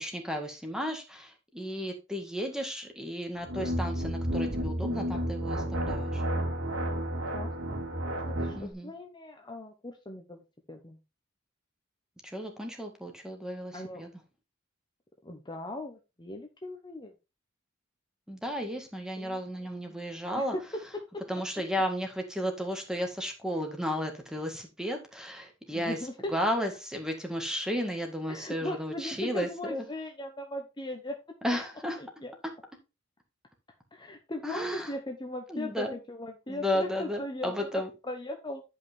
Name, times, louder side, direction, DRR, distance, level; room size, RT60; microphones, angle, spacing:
voice 1, 0.0-6.2 8.5-8.9 12.2-14.1 18.3-20.5 21.3-26.0 26.3-29.8 31.4-32.0 34.4-34.9 35.5-36.0 36.5-37.9, equal, 5° right, 3 dB, 1.8 m, -33 dB
sound 1, 3.4-8.6, equal, 70° right, 2.6 m, -31 dB
voice 2, 7.3-7.7 8.1-11.0 13.7-14.0 15.2-17.1 19.2-20.0 20.3-20.8 21.1-21.2 25.7-26.3 28.3-31.2 32.0-32.3 33.9-37.7 38.0-38.6, left 1 dB, 25° left, 3 dB, 1.0 m, -39 dB
10.5 x 5.5 x 3.5 m, 0.27 s
head